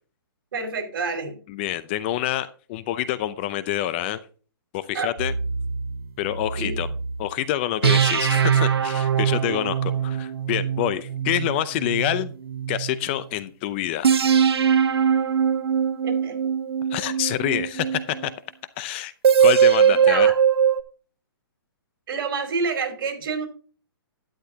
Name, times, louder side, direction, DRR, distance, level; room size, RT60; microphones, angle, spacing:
voice 1, 0.5-1.4 4.9-5.1 6.5-6.7 16.0-16.3 20.0-20.3 22.1-23.5, right 4 dB, 60° right, 3 dB, 4.8 m, -28 dB
voice 2, 1.5-4.2 4.7-5.3 6.2-6.9 7.2-12.3 12.7-14.1 16.9-18.3 18.8-19.1 19.4-20.3, left 13 dB, 25° left, 15 dB, 0.6 m, -27 dB
sound 1, 5.2-7.2 7.8-13.0 14.0-18.3 19.2-20.8, right 7 dB, 85° right, 1.3 m, -21 dB
12.0 x 10.5 x 2.8 m, 0.39 s
hypercardioid pair, 155°, 13 cm